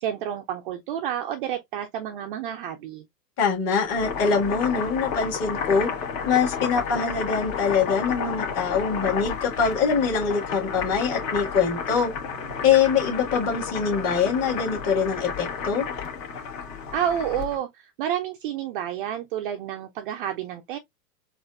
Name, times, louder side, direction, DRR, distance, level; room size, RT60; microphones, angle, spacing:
voice 1, 0.0-3.0 16.9-20.8, right 10 dB, 35° right, 0.4 m, -30 dB
voice 2, 3.4-5.9 6.3-12.1 12.6-15.9, left 6 dB, 30° left, 1.7 m, -23 dB
Boiling, 3.8-17.6, left 6 dB, 50° left, 1.6 m, -32 dB
4.1 x 2.4 x 2.3 m
hypercardioid pair, 105°, 48 cm